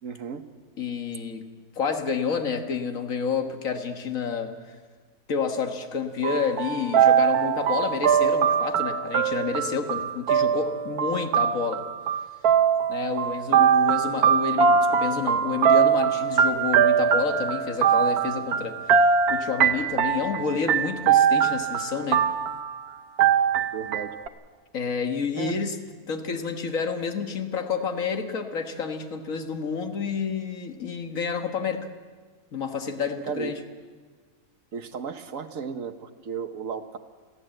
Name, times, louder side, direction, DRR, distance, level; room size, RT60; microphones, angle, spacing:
voice 1, 0.0-0.4 23.7-24.1 25.3-25.6 33.2-33.5 34.7-37.0, right 6 dB, 60° right, 9 dB, 1.4 m, -34 dB
voice 2, 0.8-1.5 1.8-4.8 5.3-11.8 12.9-22.3 24.7-25.8 26.1-31.9 32.5-33.6, left 6 dB, 60° left, 6 dB, 1.8 m, -29 dB
sound 1, 6.2-22.9 23.2-24.3, right 7 dB, 80° right, 1.4 m, -22 dB
30.0 x 11.5 x 7.7 m, 1.5 s
omnidirectional pair, 1.6 m